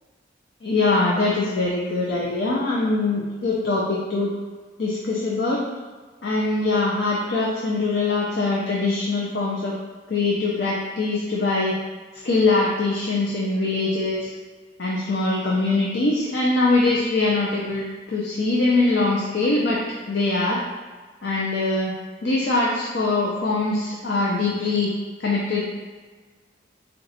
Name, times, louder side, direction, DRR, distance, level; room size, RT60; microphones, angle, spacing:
voice 1, 0.6-4.3 4.8-5.6 6.2-9.7 10.1-11.8 12.2-14.3 14.8-19.8 20.1-20.6 21.2-21.9 22.2-24.9 25.2-25.6, left 3 dB, 65° left, -5 dB, 0.5 m, -22 dB
3.8 x 2.3 x 4.1 m, 1.4 s
head